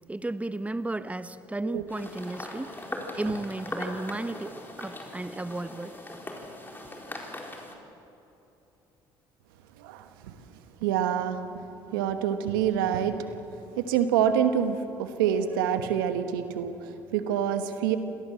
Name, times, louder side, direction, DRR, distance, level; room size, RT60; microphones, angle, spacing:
voice 1, 0.1-5.9, right 2 dB, 10° right, 12 dB, 1.1 m, -34 dB
sound 1, 1.9-7.7, left 1 dB, 20° left, 4.3 m, -40 dB
voice 2, 9.8-10.4 10.8-13.4 13.7-18.0, right 9 dB, 85° right, 9 dB, 1.3 m, -27 dB
26.0 x 18.0 x 7.7 m, 2.9 s
hypercardioid pair, 60°, 11 cm